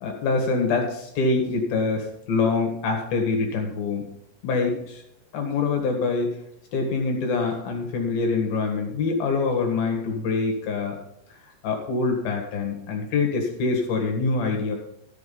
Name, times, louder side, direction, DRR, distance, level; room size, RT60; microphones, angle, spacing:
voice 1, 0.0-4.0 4.4-5.0 5.3-6.4 6.7-11.0 11.6-14.8, left 4 dB, 65° left, 2 dB, 3.4 m, -25 dB
14.0 x 6.0 x 5.5 m, 0.75 s
omnidirectional pair, 4.9 m